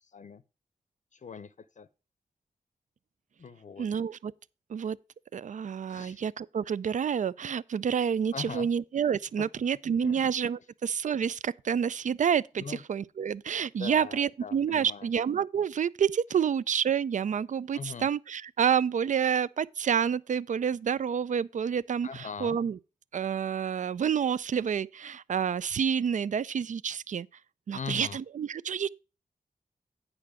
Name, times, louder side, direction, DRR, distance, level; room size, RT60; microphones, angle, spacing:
voice 1, 1.1-1.9 3.4-3.9 5.9-6.2 8.3-8.7 9.4-9.5 10.0-10.2 12.6-12.8 13.8-15.1 17.7-18.1 22.0-22.6 27.7-28.2, left 6 dB, 55° left, 0.6 m, -40 dB
voice 2, 3.8-4.3 4.7-5.0 5.3-22.8 23.1-27.3 27.7-28.9, right 7 dB, 60° right, 0.4 m, -29 dB
8.9 x 5.7 x 4.8 m
wide cardioid pair, 75°, 15 cm